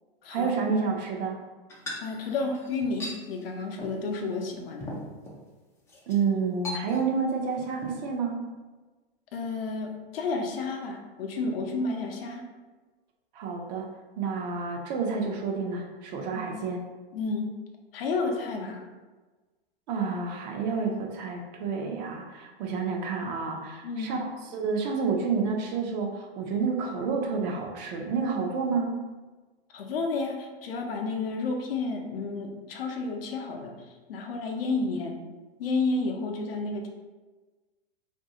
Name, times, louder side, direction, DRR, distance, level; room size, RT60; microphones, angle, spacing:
voice 1, 0.3-1.4 6.1-8.5 13.3-13.9 14.2-16.8 19.9-29.0, right 5 dB, 45° right, 2 dB, 0.5 m, -29 dB
sound 1, 1.7-3.2 3.8-4.0 4.4-4.5 4.8-5.4 5.9-6.2 6.6-7.3 7.6-7.9, left 1 dB, 10° left, 0.3 m, -38 dB
voice 2, 2.0-4.9 9.3-12.5 16.3-16.5 17.1-17.5 17.9-18.8 23.8-24.2 29.7-33.7 34.1-35.2 35.6-36.9, left 3 dB, 70° left, 2 dB, 0.6 m, -31 dB
2.5 x 2.3 x 2.7 m, 1.3 s
hypercardioid pair, 115°, 30 cm